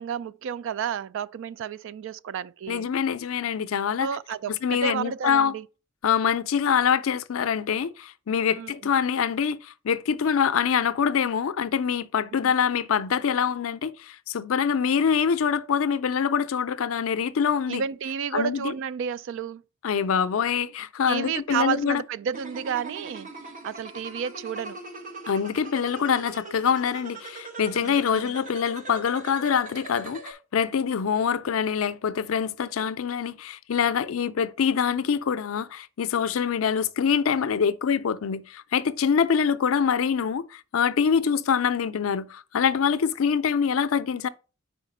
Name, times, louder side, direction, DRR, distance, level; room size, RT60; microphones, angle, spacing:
voice 1, 0.0-2.9 4.0-5.6 8.4-8.7 12.4-12.5 17.7-19.6 21.1-23.3 23.6-24.8 27.8-28.3, right 7 dB, 65° right, 0.3 m, -31 dB
voice 2, 2.7-4.1 4.5-5.5 6.0-17.8 18.3-18.7 19.8-22.0 25.3-44.3, left 7 dB, 75° left, 0.4 m, -25 dB
sound 1, 22.3-30.3, right 2 dB, 40° right, 1.1 m, -41 dB
4.9 x 4.5 x 5.3 m
head